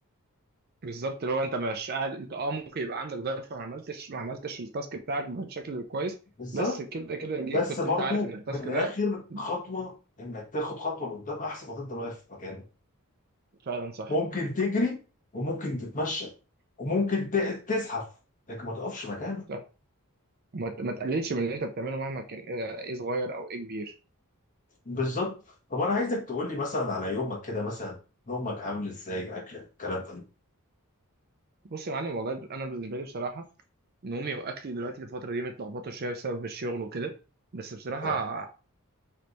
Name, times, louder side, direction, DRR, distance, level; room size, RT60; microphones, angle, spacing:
voice 1, 0.8-6.1 6.5-7.6 7.8-8.9 9.3-9.4 13.7-14.1 19.5-19.6 20.5-23.9 31.7-33.4 34.0-37.1 37.5-38.5, right 3 dB, 45° right, 6 dB, 0.6 m, -33 dB
voice 2, 6.4-6.8 7.5-12.6 14.1-15.0 15.3-16.3 16.8-18.1 18.5-19.4 24.8-25.4 25.7-27.9 28.3-30.2 38.0-38.2, left 2 dB, 35° left, 0 dB, 1.3 m, -31 dB
3.3 x 3.2 x 4.0 m, 0.33 s
head